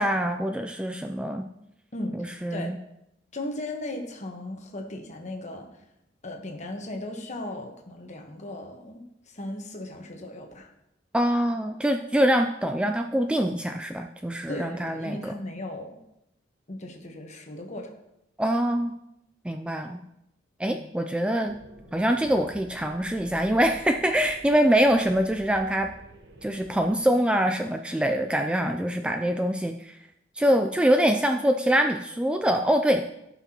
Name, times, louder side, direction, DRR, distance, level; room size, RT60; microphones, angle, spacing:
voice 1, 0.0-1.5 2.1-2.8 11.1-15.3 18.4-18.9 19.4-20.0 20.6-21.6 21.9-25.9 26.4-30.0 30.4-33.1, equal, 5° right, 5 dB, 0.3 m, -24 dB
voice 2, 1.9-2.7 3.3-5.7 6.2-10.7 14.5-16.0 16.7-17.9 20.6-20.9, left 1 dB, 40° left, 3 dB, 1.2 m, -37 dB
sound 1, 21.5-27.0, right 1 dB, 70° right, 1.0 m, -49 dB
15.0 x 5.7 x 2.9 m, 0.83 s
head